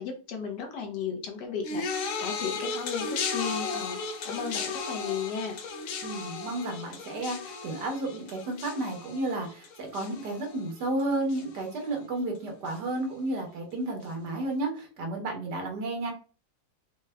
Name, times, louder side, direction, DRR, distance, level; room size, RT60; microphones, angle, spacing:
voice 1, 0.0-5.6, left 6 dB, 90° left, 4 dB, 1.5 m, -35 dB
sound 1, 1.6-11.0 11.3-11.8 12.7-12.8, left 4 dB, 65° left, 0.9 m, -35 dB
voice 2, 6.0-16.1, right 2 dB, 80° right, 2 dB, 1.7 m, -32 dB
4.8 x 2.2 x 3.3 m, 0.38 s
omnidirectional pair, 1.8 m